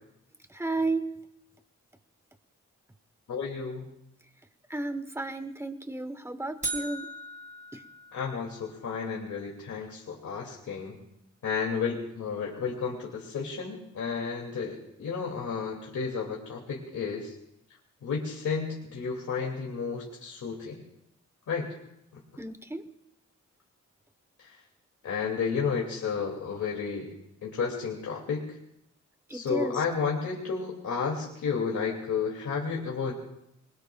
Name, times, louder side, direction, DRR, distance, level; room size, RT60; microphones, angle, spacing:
voice 1, 0.5-1.1 4.7-7.1 7.7-7.8 22.4-22.9 29.3-29.8, right 2 dB, 10° right, 9 dB, 1.0 m, -33 dB
voice 2, 3.3-3.9 8.1-11.0 11.4-17.3 18.0-20.8 21.5-21.7 24.4-24.6 25.0-27.1 27.4-28.6 29.3-33.1, left 5 dB, 90° left, -1 dB, 2.3 m, -32 dB
sound 1, 6.6-8.8, right 2 dB, 25° right, 1.9 m, -38 dB
26.5 x 21.5 x 2.3 m, 0.81 s
wide cardioid pair, 130°, 29 cm